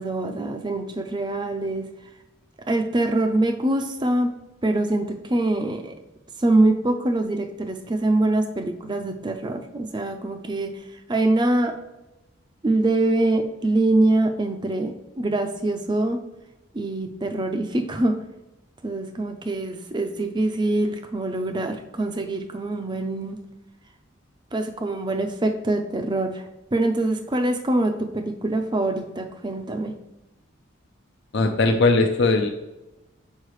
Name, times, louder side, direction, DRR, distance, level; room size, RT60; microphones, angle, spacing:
voice 1, 0.0-1.9 2.7-4.3 4.6-6.0 6.4-10.8 11.1-11.8 12.6-16.2 16.7-18.2 18.8-23.4 24.5-29.9, right 2 dB, 20° right, 7 dB, 0.5 m, -24 dB
voice 2, 31.3-32.5, left 3 dB, 55° left, 4 dB, 0.5 m, -19 dB
6.5 x 4.8 x 3.1 m, 1.0 s
head